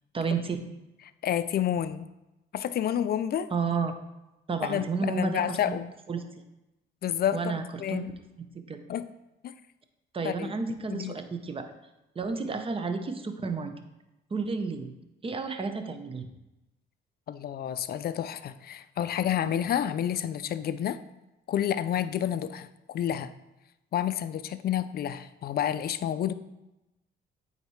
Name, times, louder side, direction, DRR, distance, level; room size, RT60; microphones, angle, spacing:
voice 1, 0.1-0.6 3.5-3.9 4.5-5.6 6.1-6.2 7.3-8.0 8.7-8.8 10.1-11.7 12.2-13.7 14.3-14.9 15.2-16.3, right 4 dB, 30° right, 7 dB, 0.7 m, -31 dB
voice 2, 1.2-2.1 2.5-3.5 4.6-5.9 7.0-8.1 8.9-9.1 9.4-9.5 10.2-10.5 10.9-11.2 12.5-12.6 17.3-21.0 21.5-23.3 23.9-26.3, left 10 dB, 50° left, 13 dB, 0.4 m, -29 dB
8.8 x 4.0 x 3.1 m, 0.96 s
cardioid pair, 90°, 20 cm